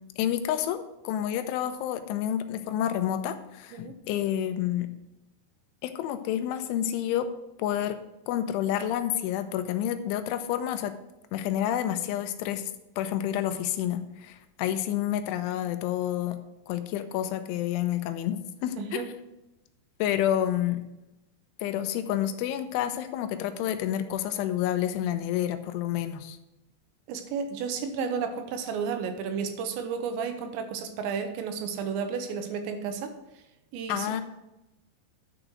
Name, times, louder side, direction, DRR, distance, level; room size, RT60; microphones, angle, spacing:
voice 1, 0.2-4.9 5.8-7.3 7.6-8.0 8.3-10.9 11.3-12.7 13.0-16.4 16.7-19.1 20.0-20.8 21.6-26.4 33.9-34.2, left 11 dB, 85° left, 9 dB, 3.1 m, -29 dB
voice 2, 18.8-19.1 27.1-33.1 33.7-34.2, right 6 dB, 85° right, 6 dB, 3.0 m, -32 dB
9.9 x 5.0 x 6.2 m, 0.94 s
omnidirectional pair, 5.3 m